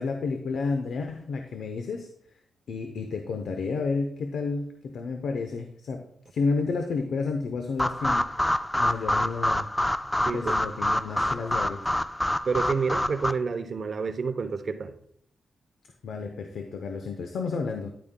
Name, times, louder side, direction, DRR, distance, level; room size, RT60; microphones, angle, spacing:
voice 1, 0.0-2.1 2.7-6.0 6.3-9.7 10.3-11.8 16.0-17.9, left 4 dB, 80° left, 5 dB, 0.7 m, -31 dB
sound 1, 7.8-13.3, left 1 dB, 10° left, 0.3 m, -27 dB
voice 2, 10.2-10.6 12.5-14.9, right 5 dB, 55° right, 10 dB, 0.6 m, -29 dB
10.5 x 8.8 x 2.2 m, 0.69 s
cardioid pair, 100°, 0 cm